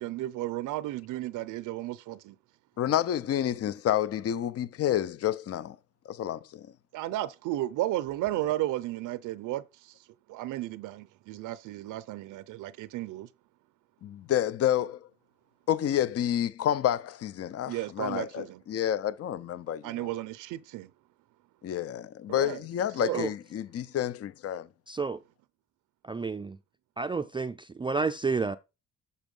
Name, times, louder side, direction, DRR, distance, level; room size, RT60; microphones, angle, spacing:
voice 1, 0.0-2.4 6.9-13.3 17.7-18.6 19.8-20.9 22.3-22.6 23.0-23.3, right 15 dB, 85° right, 0.5 m, -34 dB
voice 2, 2.8-5.8 6.1-6.7 14.0-15.0 15.7-20.1 21.6-24.7, left 10 dB, 50° left, 0.6 m, -29 dB
voice 3, 24.9-25.2 26.0-26.6 27.0-28.6, right 4 dB, 15° right, 0.4 m, -30 dB
7.0 x 5.5 x 5.3 m
cardioid pair, 90°, 30 cm